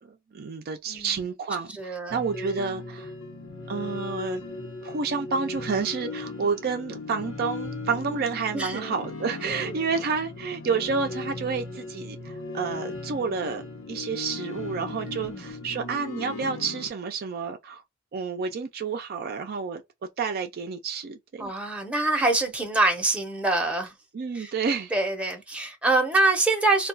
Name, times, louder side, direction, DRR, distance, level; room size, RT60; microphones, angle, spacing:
voice 1, 0.0-3.1 3.7-4.4 4.8-13.6 13.9-17.8 18.1-21.5 24.1-24.9, right 5 dB, 50° right, 0.4 m, -30 dB
voice 2, 1.8-2.2 8.5-8.9 9.4-9.7 15.1-15.5 21.4-23.9 24.3-24.5 24.9-26.9, right 2 dB, 5° right, 0.7 m, -25 dB
sound 1, 2.1-16.9, left 2 dB, 75° left, 1.0 m, -37 dB
2.3 x 2.2 x 3.8 m
head